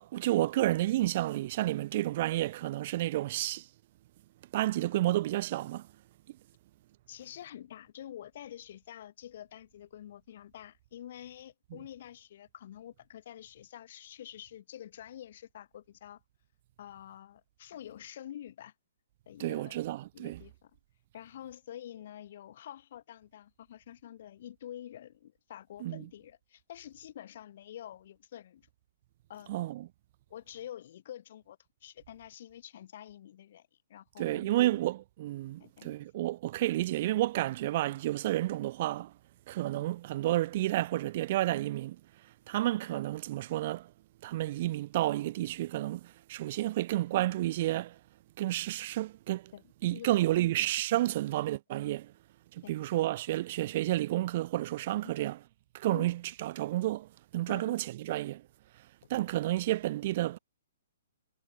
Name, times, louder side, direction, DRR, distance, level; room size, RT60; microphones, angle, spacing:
voice 1, 0.0-3.7 4.5-5.9 19.4-20.4 25.8-26.0 29.5-29.9 34.2-39.1 39.5-42.0 42.5-43.9 44.2-48.0 48.4-49.5 49.8-52.1 52.5-55.4 55.7-58.4 59.1-60.4, right 15 dB, 45° right, 0.6 m, -31 dB
voice 2, 7.1-16.2 16.8-18.7 19.3-19.8 20.1-20.7 21.1-28.7 29.3-29.7 30.3-34.8 35.6-36.0 49.5-49.6 49.9-50.7 52.6-52.8 55.0-55.2 55.9-56.1 57.5-57.8, left 11 dB, 55° left, 2.7 m, -48 dB
hypercardioid pair, 135°, 0 cm